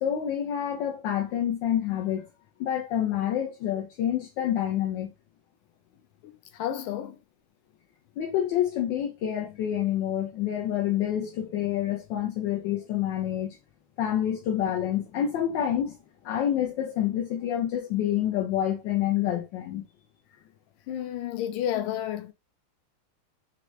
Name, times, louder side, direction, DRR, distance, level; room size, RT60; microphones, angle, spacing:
voice 1, 0.0-2.3 2.6-5.1 8.2-13.6 14.0-16.0 16.2-19.8, left 10 dB, 70° left, 1.2 m, -28 dB
voice 2, 6.2-7.2 20.9-22.3, left 11 dB, 90° left, 1.5 m, -31 dB
4.5 x 2.9 x 3.1 m
omnidirectional pair, 2.3 m